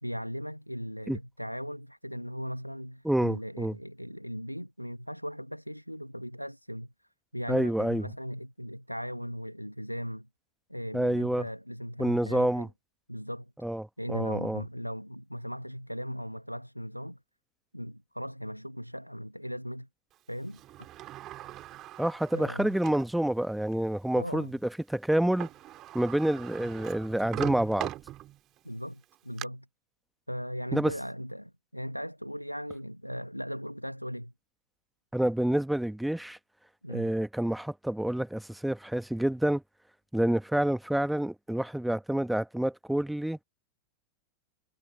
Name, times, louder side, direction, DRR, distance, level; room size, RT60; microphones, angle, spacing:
voice 1, 0.0-6.9 7.3-10.3 10.7-12.7 13.1-13.5 14.0-17.2 17.7-19.9 20.3-20.6 22.3-22.7 24.2-24.5 28.6-29.7 30.3-34.3 36.8-37.1, equal, 90° left, 1.6 m, -38 dB
voice 2, 3.0-3.8 7.5-8.1 10.9-11.5 12.0-12.7 13.6-14.6 22.0-24.6 24.9-25.5 25.9-27.9 30.7-30.9 35.1-36.4 36.9-39.6 40.1-43.4, right 1 dB, ahead, 1.5 m, -28 dB
Sliding door, 20.5-23.1 23.7-23.8 25.1-25.2 25.4-28.6 29.0-29.5, right 14 dB, 35° right, 2.4 m, -40 dB
figure-of-eight pair, 90°, 0 cm